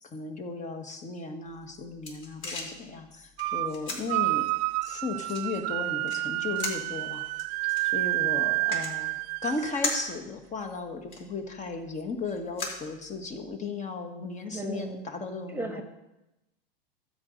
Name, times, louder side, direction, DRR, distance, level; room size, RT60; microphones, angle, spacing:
voice 1, 0.0-4.5 4.8-7.2 7.9-9.1 9.4-15.8, left 3 dB, 25° left, 6 dB, 1.6 m, -35 dB
sound 1, 1.5-13.5, left 3 dB, 40° left, 4.5 m, -40 dB
sound 2, 3.4-3.8 4.1-10.1, right 21 dB, 45° right, 0.4 m, -29 dB
voice 2, 14.5-15.1 15.5-15.8, right 2 dB, 5° right, 5 dB, 1.5 m, -35 dB
13.0 x 5.2 x 8.2 m, 0.96 s
hypercardioid pair, 120°, 30 cm